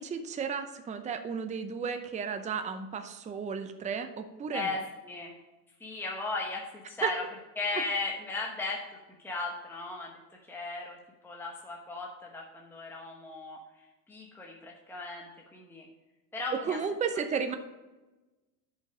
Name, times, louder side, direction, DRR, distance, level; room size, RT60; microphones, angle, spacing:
voice 1, 0.0-4.8 7.0-7.1 16.7-17.6, right 6 dB, 15° right, 8 dB, 0.6 m, -33 dB
voice 2, 4.5-5.3 5.8-7.2 7.6-8.8 9.2-10.1 10.5-11.0 11.2-15.9 16.3-16.8, left 3 dB, 5° left, -1 dB, 1.1 m, -36 dB
10.0 x 5.6 x 5.0 m, 1.1 s
supercardioid pair, 110°, 50 cm